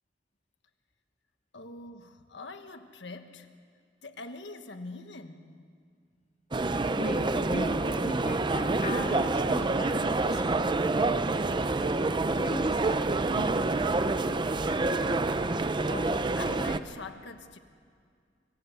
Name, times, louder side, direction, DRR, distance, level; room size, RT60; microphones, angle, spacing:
voice 1, 1.5-3.5 4.0-5.7 14.9-15.1 15.9-17.6, left 3 dB, 90° left, 7 dB, 1.4 m, -43 dB
sound 1, 6.5-16.8, right 2 dB, 25° right, 0.6 m, -27 dB
voice 2, 6.9-10.7 11.8-13.7, left 1 dB, 45° left, 0 dB, 3.3 m, -38 dB
26.0 x 15.5 x 8.0 m, 2.1 s
head